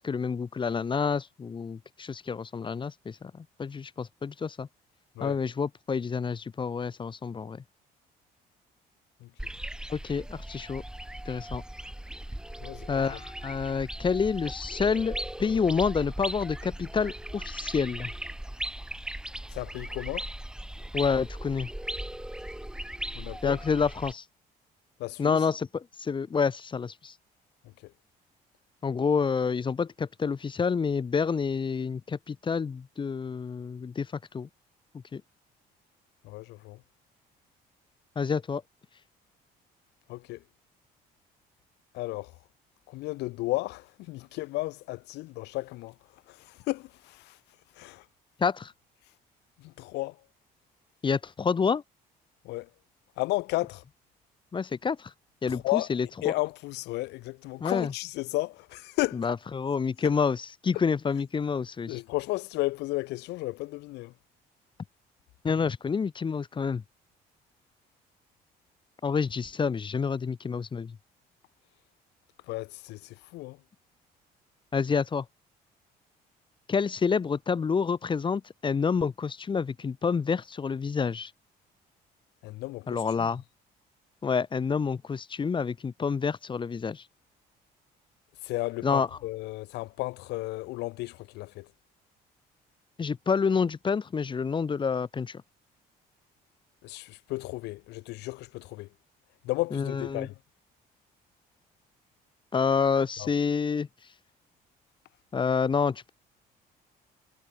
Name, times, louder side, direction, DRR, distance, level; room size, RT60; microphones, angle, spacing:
voice 1, 0.0-4.7 5.2-7.6 9.9-10.8 11.2-11.6 12.9-18.1 20.9-21.7 23.4-24.2 25.2-27.1 28.8-34.1 34.3-34.5 35.1-35.2 38.1-38.6 48.4-48.7 51.0-51.8 54.5-55.1 55.4-56.3 57.6-57.9 59.2-62.0 65.4-66.8 69.0-71.0 74.7-75.2 76.7-81.3 82.9-83.4 84.2-87.0 88.8-89.1 93.0-95.4 99.7-100.3 102.5-103.9 105.3-106.1, left 5 dB, 30° left, 1.3 m, -28 dB
voice 2, 9.2-9.5 12.6-13.2 19.5-20.3 23.1-23.6 25.0-25.5 27.6-27.9 36.2-36.8 40.1-40.4 41.9-42.4 42.9-47.4 47.7-48.1 49.6-50.2 52.4-52.7 53.2-53.8 55.5-55.9 56.2-59.3 60.7-60.8 61.9-64.1 72.5-73.6 82.4-83.3 88.4-91.7 96.8-98.9 99.4-100.4 103.2-103.3, left 20 dB, 90° left, 3.2 m, -34 dB
sound 1, 9.4-24.1, right 1 dB, 5° right, 1.7 m, -38 dB
cardioid pair, 110°, 17 cm